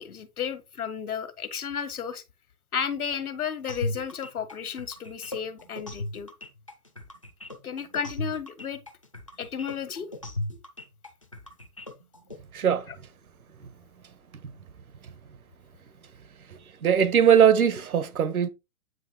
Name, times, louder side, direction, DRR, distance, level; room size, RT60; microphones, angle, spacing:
voice 1, 0.0-2.2 2.7-6.3 7.6-8.8 9.4-10.1, left 7 dB, 80° left, 1.4 m, -33 dB
sound 1, 3.7-12.4, left 2 dB, 25° left, 0.5 m, -37 dB
voice 2, 12.5-12.9 16.5-18.5, right 8 dB, 75° right, 1.5 m, -21 dB
9.0 x 3.2 x 4.5 m
hypercardioid pair, 175°, 44 cm